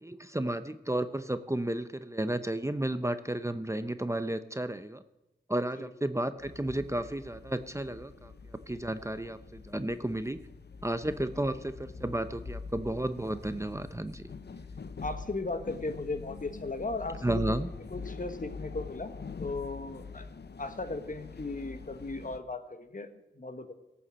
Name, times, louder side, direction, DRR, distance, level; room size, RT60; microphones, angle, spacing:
voice 1, 0.0-5.0 5.5-8.3 8.7-10.4 10.8-14.2 17.2-17.7, right 1 dB, 15° right, 11 dB, 0.7 m, -32 dB
sound 1, 6.4-22.4, left 4 dB, 65° left, 0.8 m, -44 dB
voice 2, 15.0-17.5 17.9-19.1 19.4-20.3 20.6-23.7, left 3 dB, 45° left, 8 dB, 1.3 m, -37 dB
17.5 x 7.1 x 7.5 m, 0.97 s
wide cardioid pair, 65°, 18 cm